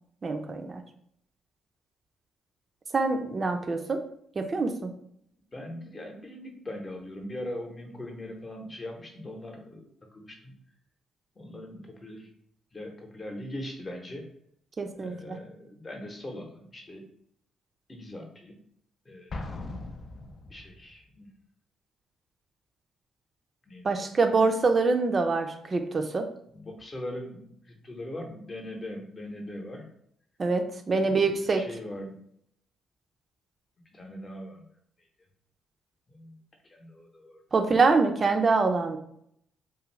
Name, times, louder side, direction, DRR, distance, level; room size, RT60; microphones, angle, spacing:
voice 1, 0.2-0.8 2.9-4.0 4.4-4.9 14.8-15.4 23.8-26.3 30.4-31.7 37.5-39.0, right 4 dB, 40° right, 6 dB, 0.4 m, -25 dB
voice 2, 5.5-10.5 11.4-12.3 12.7-14.3 14.9-17.0 17.9-18.6 19.1-19.6 20.5-21.3 23.7-24.1 26.5-29.9 30.9-32.2 33.9-34.6 36.1-36.4 36.7-37.4, left 1 dB, 35° left, 2 dB, 0.8 m, -41 dB
Explosion, 19.3-20.9, left 2 dB, 50° left, 0.4 m, -39 dB
2.5 x 2.4 x 3.1 m, 0.69 s
supercardioid pair, 55°, 0 cm